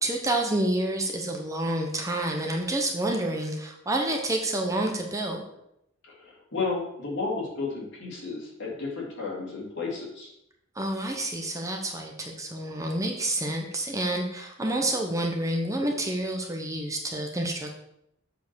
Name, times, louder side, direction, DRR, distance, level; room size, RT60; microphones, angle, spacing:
voice 1, 0.0-5.4 10.8-17.7, right 1 dB, 15° right, 2 dB, 0.9 m, -28 dB
voice 2, 6.0-10.3, left 3 dB, 60° left, -5 dB, 3.3 m, -33 dB
7.4 x 4.6 x 6.2 m, 0.79 s
head